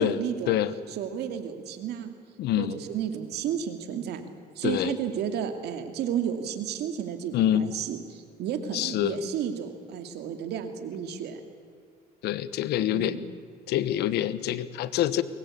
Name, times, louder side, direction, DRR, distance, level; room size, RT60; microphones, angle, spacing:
voice 1, 0.0-0.6 0.9-2.1 2.6-4.3 4.6-11.4 12.9-13.3, right 8 dB, 75° right, 7 dB, 2.5 m, -32 dB
voice 2, 2.4-2.7 4.6-5.0 7.3-7.7 8.7-9.2 12.2-13.2 13.7-15.2, left 12 dB, 75° left, 15 dB, 1.1 m, -26 dB
23.0 x 19.5 x 8.5 m, 2.1 s
cardioid pair, 110°, 17 cm